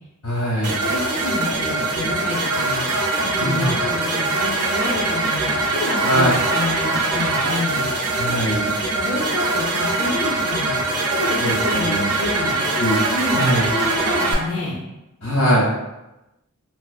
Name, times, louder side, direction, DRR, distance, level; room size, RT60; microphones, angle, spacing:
voice 1, 0.2-0.8 3.4-3.7 6.0-6.3 8.2-8.7 11.4-12.0 12.8-13.0 13.3-13.6 15.2-15.7, equal, 85° left, -7 dB, 1.3 m, -21 dB
sound 1, 0.6-14.3, right 2 dB, 80° right, 0.4 m, -22 dB
voice 2, 0.8-2.9 3.2-7.9 9.0-10.8 11.1-12.6 13.1-14.8, left 2 dB, 30° left, -6 dB, 0.5 m, -28 dB
2.5 x 2.4 x 2.3 m, 0.97 s
head